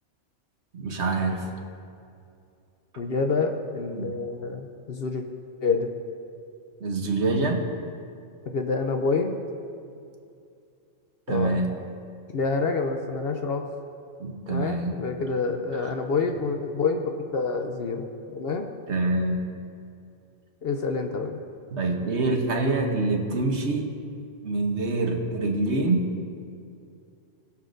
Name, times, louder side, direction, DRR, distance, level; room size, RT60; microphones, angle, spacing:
voice 1, 0.7-1.5 3.9-4.1 6.8-7.7 11.3-11.8 14.2-15.0 15.8-15.9 18.9-19.5 21.7-23.9 24.4-26.1, right 2 dB, 60° right, 3 dB, 1.3 m, -26 dB
voice 2, 3.0-5.2 5.6-5.9 8.5-9.3 11.3-11.8 12.3-13.6 14.5-17.0 17.3-18.0 18.3-18.7 20.6-21.4, left 4 dB, 55° left, 4 dB, 0.8 m, -27 dB
20.0 x 7.1 x 2.6 m, 2.4 s
omnidirectional pair, 1.3 m